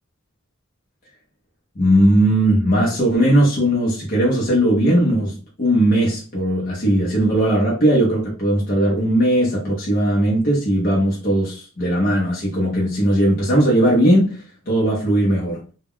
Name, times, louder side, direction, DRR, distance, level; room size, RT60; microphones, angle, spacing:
voice 1, 1.8-15.6, right 1 dB, 40° left, 0.7 m, -18 dB
2.2 x 2.2 x 3.5 m
head